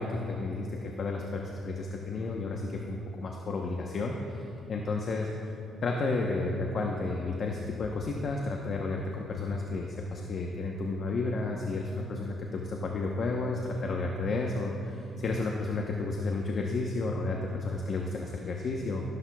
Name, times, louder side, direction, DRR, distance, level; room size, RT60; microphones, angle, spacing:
voice 1, 0.0-5.3 5.8-19.0, left 3 dB, 55° left, 0 dB, 0.9 m, -32 dB
15.5 x 11.0 x 2.3 m, 2.6 s
cardioid pair, 90°, 0 cm